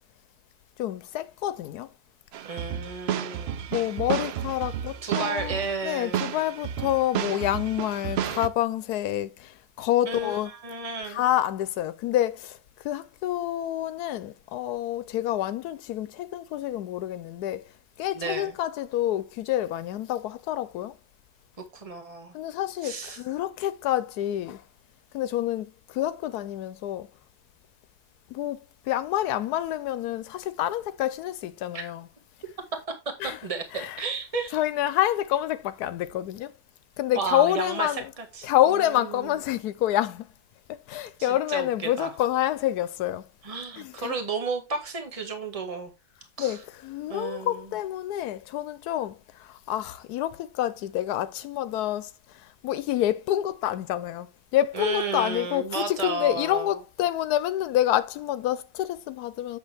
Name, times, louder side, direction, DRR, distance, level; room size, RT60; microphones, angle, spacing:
voice 1, 0.8-1.9 3.7-10.5 11.0-17.6 18.0-21.0 22.3-24.6 25.1-27.1 28.3-32.1 33.2-34.1 34.5-36.5 37.0-38.1 38.4-40.3 40.7-43.3 43.8-44.2 46.4-59.6, left 13 dB, 90° left, 1.1 m, -28 dB
sound 1, 2.3-8.5, right 9 dB, 65° right, 0.6 m, -32 dB
voice 2, 2.4-3.6 5.0-6.2 10.0-11.2 18.1-18.5 21.7-22.3 22.8-23.2 31.7-31.9 33.4-34.5 37.1-38.5 38.8-39.3 41.2-42.1 43.4-45.9 46.4-46.6 47.1-47.7 54.7-56.8, right 4 dB, 25° right, 1.6 m, -33 dB
8.1 x 6.7 x 3.4 m
omnidirectional pair, 1.6 m